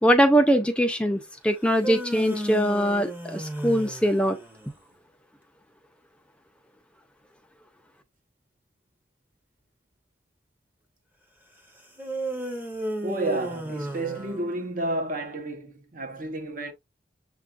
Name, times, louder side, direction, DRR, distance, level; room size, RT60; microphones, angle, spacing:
voice 1, 0.0-4.4, equal, 5° left, 0.4 m, -22 dB
sound 1, 1.6-4.8 12.0-14.9, right 1 dB, 10° right, 0.8 m, -34 dB
voice 2, 13.0-16.7, right 2 dB, 45° right, 0.8 m, -31 dB
6.7 x 2.4 x 2.3 m
head